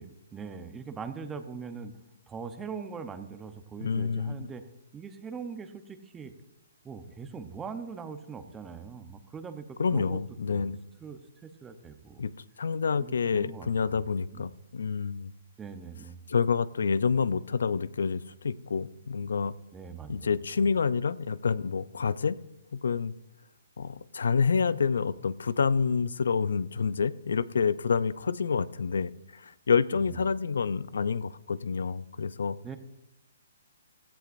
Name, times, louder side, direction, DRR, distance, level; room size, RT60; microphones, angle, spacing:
voice 1, 0.0-2.0 2.3-4.6 4.9-6.3 6.8-10.2 10.5-10.7 11.0-12.2 13.0-14.0 14.3-14.4 15.6-16.2 19.7-20.3 20.6-20.7 29.9-30.1 32.6-32.8, right 5 dB, 10° right, 8 dB, 0.8 m, -41 dB
voice 2, 3.8-4.5 9.8-10.8 12.2-12.3 12.6-15.3 16.3-19.5 20.1-22.4 22.7-23.1 23.8-32.6, left 5 dB, 80° left, 17 dB, 0.5 m, -28 dB
16.0 x 14.0 x 2.6 m, 0.93 s
hypercardioid pair, 160°, 0 cm